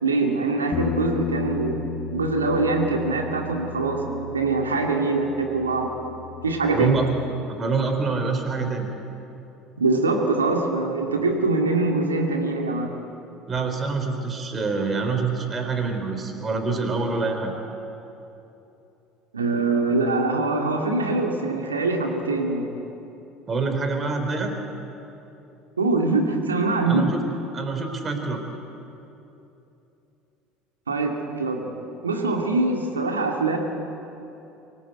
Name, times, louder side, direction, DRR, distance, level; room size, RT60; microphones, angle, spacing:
voice 1, 0.0-1.8 2.1-6.1 6.4-7.0 9.8-12.9 19.3-22.7 25.8-27.1 30.9-31.8 32.0-33.6, right 3 dB, 90° right, 2 dB, 2.2 m, -23 dB
Bass guitar, 0.7-5.5 5.8-7.0, left 5 dB, 50° left, 1.2 m, -34 dB
voice 2, 6.7-7.1 7.5-8.9 13.5-17.6 23.5-24.5 26.9-27.2 27.5-28.4, right 4 dB, 30° right, 5 dB, 3.8 m, -26 dB
24.5 x 17.0 x 8.2 m, 2.9 s
hypercardioid pair, 70°, 0 cm